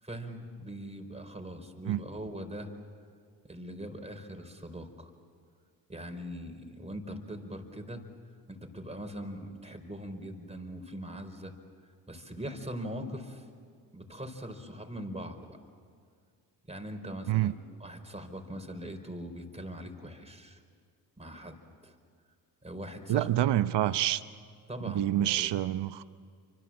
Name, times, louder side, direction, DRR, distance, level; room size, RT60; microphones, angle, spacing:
voice 1, 0.0-2.7 3.4-5.1 5.9-8.0 8.5-11.5 12.1-13.4 13.9-15.6 16.7-20.6 21.2-21.9 22.6-23.3 24.7-25.5, equal, 15° right, 5 dB, 4.7 m, -41 dB
voice 2, 23.1-24.2 24.8-26.0, right 13 dB, 55° right, 14 dB, 1.0 m, -27 dB
29.0 x 25.5 x 7.6 m, 2.1 s
hypercardioid pair, 50°, 49 cm